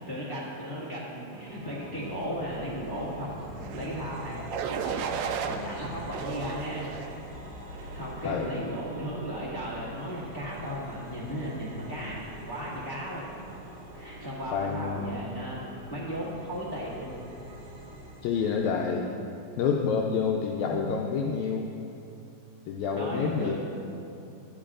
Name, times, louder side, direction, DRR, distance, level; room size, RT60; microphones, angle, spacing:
voice 1, 0.1-4.5 4.8-5.0 5.5-6.9 7.9-13.3 13.9-15.6 15.9-17.2 20.7-20.9 22.9-23.6, equal, 15° left, -8 dB, 0.9 m, -36 dB
sound 1, 1.3-18.7, equal, 50° right, 1.9 m, -44 dB
sound 2, 3.6-4.0 4.5-5.6 6.1-7.1 7.7-8.1, right 7 dB, 80° right, 1.7 m, -34 dB
voice 2, 14.5-15.2 18.2-19.1 19.6-21.7 22.7-23.6, left 6 dB, 80° left, 0 dB, 1.8 m, -28 dB
12.0 x 10.0 x 2.5 m, 2.7 s
omnidirectional pair, 3.5 m